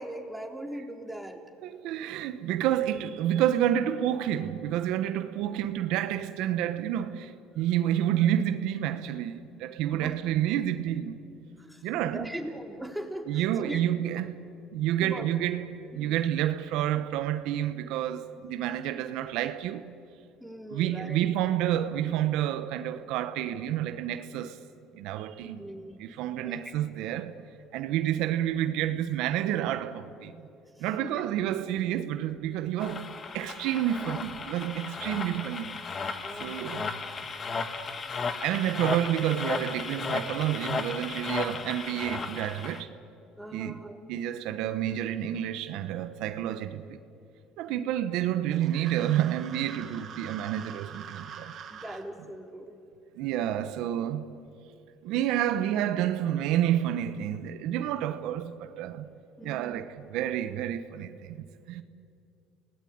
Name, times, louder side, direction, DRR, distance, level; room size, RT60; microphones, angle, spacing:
voice 1, 0.0-1.4 8.1-8.4 9.9-10.1 11.6-13.8 15.0-15.3 15.9-16.2 20.4-21.2 25.4-26.7 30.7-31.2 34.1-34.2 36.2-37.0 43.4-44.0 47.7-48.0 51.7-52.8 59.4-59.8, right 1 dB, ahead, 3.7 m, -41 dB
voice 2, 1.6-11.2 11.8-12.3 13.3-14.4 14.7-15.6 15.9-19.9 20.7-24.6 25.0-25.6 26.0-27.3 27.7-30.3 30.8-33.1 33.3-35.8 36.4-36.9 38.4-42.9 43.5-43.7 44.1-47.0 47.6-51.5 53.2-54.3 55.0-59.1 59.4-61.4 61.7-61.8, right 11 dB, 75° right, 1.2 m, -29 dB
sound 1, 32.8-42.8, left 4 dB, 35° left, 1.8 m, -35 dB
sound 2, 48.5-52.0, right 8 dB, 50° right, 2.3 m, -44 dB
29.0 x 18.5 x 9.6 m
supercardioid pair, 100°, 0 cm